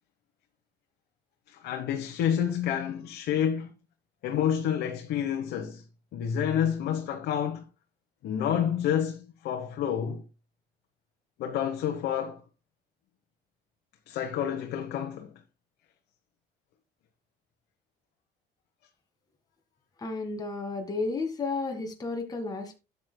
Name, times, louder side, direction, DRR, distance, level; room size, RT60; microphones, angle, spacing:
voice 1, 1.5-3.7 4.2-5.8 6.1-7.6 8.2-10.2 11.4-12.4 14.1-15.3, left 9 dB, 75° left, 1.2 m, -29 dB
voice 2, 20.0-22.7, left 3 dB, 20° left, 1.9 m, -32 dB
12.5 x 8.5 x 2.2 m
cardioid pair, 110°, 17 cm